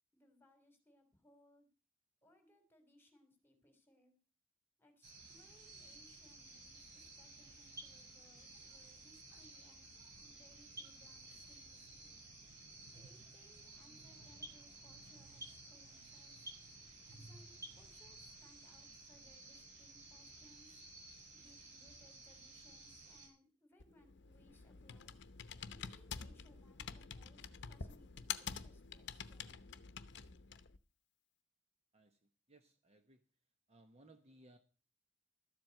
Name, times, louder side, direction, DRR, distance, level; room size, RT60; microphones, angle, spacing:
voice 1, 0.1-1.7 2.2-4.2 4.8-9.9 10.2-12.1 12.9-16.5 17.0-20.8 21.3-25.1 25.7-29.6, left 1 dB, 10° left, 6 dB, 3.4 m, -68 dB
sound 1, 5.0-23.3, right 2 dB, 60° right, 6.9 m, -57 dB
sound 2, 7.5-18.4, right 1 dB, 15° right, 1.6 m, -58 dB
Computer keyboard, 23.8-30.8, left 7 dB, 60° left, 0.8 m, -48 dB
voice 2, 32.5-33.2 33.7-34.6, right 1 dB, 35° right, 7 dB, 1.2 m, -63 dB
13.0 x 7.8 x 7.8 m, 0.35 s
head